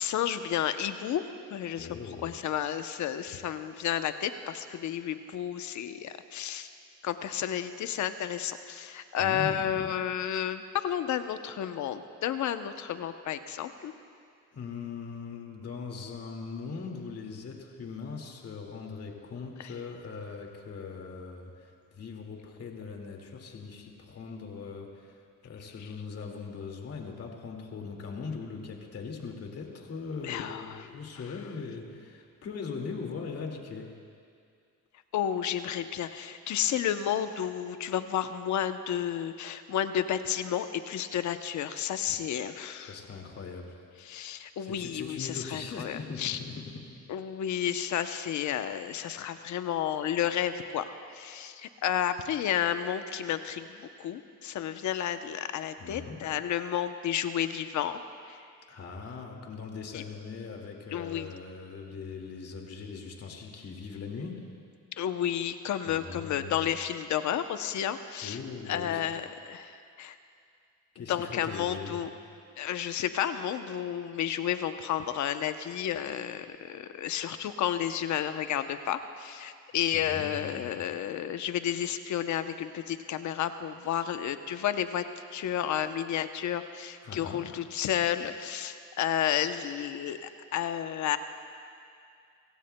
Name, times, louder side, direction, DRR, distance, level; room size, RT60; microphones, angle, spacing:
voice 1, 0.0-1.9 2.2-6.7 7.0-13.9 19.6-19.7 25.8-25.9 30.2-30.9 35.1-43.0 44.0-46.4 47.1-58.0 58.3-58.4 59.9-60.0 60.9-61.3 65.0-68.4 68.7-70.2 71.0-72.1 72.6-85.0 85.3-91.2, left 10 dB, 70° left, 9 dB, 0.8 m, -31 dB
voice 2, 1.7-2.3 9.2-10.0 14.5-25.2 25.4-33.9 42.9-43.8 44.6-46.9 55.8-56.2 58.7-64.4 65.9-66.6 68.2-69.0 70.9-72.0 79.9-80.7 87.0-87.5, left 5 dB, 55° left, 1 dB, 2.2 m, -40 dB
29.5 x 16.5 x 2.2 m, 2.3 s
cardioid pair, 90°, 30 cm